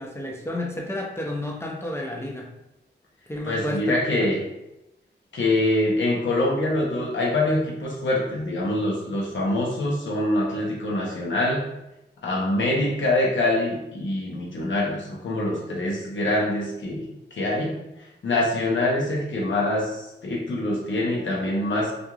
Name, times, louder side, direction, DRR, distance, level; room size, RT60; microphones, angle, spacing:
voice 1, 0.0-2.5 3.3-4.0, left 1 dB, 15° left, 0 dB, 0.5 m, -31 dB
voice 2, 3.4-4.4 5.3-11.6 12.2-17.8 18.2-21.9, left 1 dB, 90° left, -3 dB, 0.7 m, -24 dB
2.9 x 2.4 x 2.3 m, 0.90 s
wide cardioid pair, 65°, 19 cm